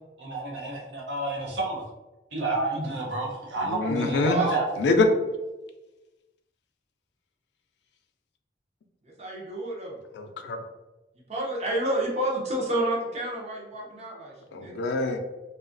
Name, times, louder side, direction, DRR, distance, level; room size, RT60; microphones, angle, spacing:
voice 1, 0.2-1.8 2.3-4.7, right 2 dB, 90° right, -2 dB, 0.7 m, -30 dB
voice 2, 3.6-4.4 4.8-5.1 10.2-10.6 14.5-15.2, left 3 dB, 75° left, 6 dB, 0.3 m, -25 dB
voice 3, 4.1-4.6 9.0-10.0 11.3-14.8, right 1 dB, 35° right, -2 dB, 0.6 m, -29 dB
2.7 x 2.3 x 2.5 m, 1.1 s
head